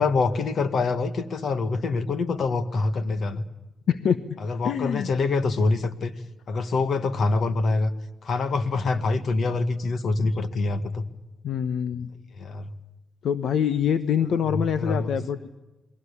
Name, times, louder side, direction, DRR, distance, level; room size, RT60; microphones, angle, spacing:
voice 1, 0.0-3.5 4.4-6.1 6.5-7.9 8.2-11.0 12.4-12.7 14.5-15.2, left 3 dB, 50° left, 10 dB, 1.8 m, -25 dB
voice 2, 3.9-4.2 4.6-5.1 10.2-10.3 11.4-12.1 13.2-15.6, left 8 dB, 65° left, 11 dB, 1.0 m, -25 dB
29.0 x 22.0 x 8.4 m, 1.0 s
cardioid pair, 140°, 0 cm